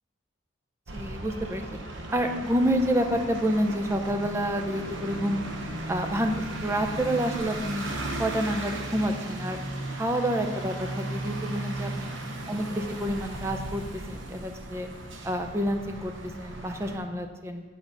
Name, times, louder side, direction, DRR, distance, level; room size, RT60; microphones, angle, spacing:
voice 1, 0.9-1.6 2.1-5.5 5.9-6.3 6.6-7.8 8.2-9.6 9.9-12.1 12.5-13.8 14.1-14.9 15.2-17.6, equal, 15° right, 5 dB, 0.5 m, -28 dB
sound 1, 0.9-17.0, right 2 dB, 80° right, 0.8 m, -36 dB
8.2 x 4.7 x 5.3 m, 1.4 s
head